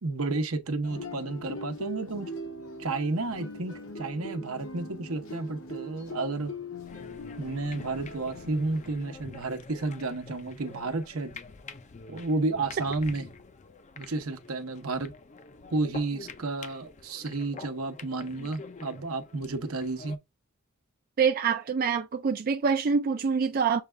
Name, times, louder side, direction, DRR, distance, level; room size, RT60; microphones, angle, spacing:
voice 1, 0.0-2.3 2.8-6.5 7.4-11.3 12.1-13.3 14.0-15.1 15.7-20.2, right 3 dB, 75° right, 0.9 m, -31 dB
sound 1, 0.8-8.9, left 1 dB, 80° left, 1.3 m, -41 dB
sound 2, 6.9-20.2, left 4 dB, 35° left, 0.5 m, -47 dB
voice 2, 21.2-23.8, right 6 dB, 45° right, 0.4 m, -25 dB
6.5 x 2.3 x 3.2 m
head